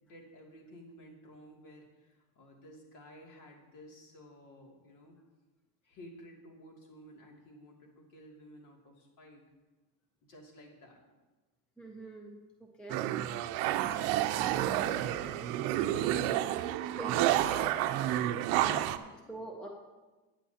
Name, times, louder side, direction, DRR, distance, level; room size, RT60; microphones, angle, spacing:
voice 1, 0.0-5.2 5.8-9.4 10.2-11.0 16.5-16.7 17.1-18.5 18.9-19.2, equal, 60° left, -1 dB, 2.6 m, -54 dB
voice 2, 11.8-13.0 16.9-17.2 19.1-19.7, right 1 dB, ahead, 1 dB, 0.4 m, -45 dB
sound 1, 12.9-19.0, right 13 dB, 70° right, 0.7 m, -30 dB
15.0 x 9.2 x 2.8 m, 1.2 s
cardioid pair, 165°, 47 cm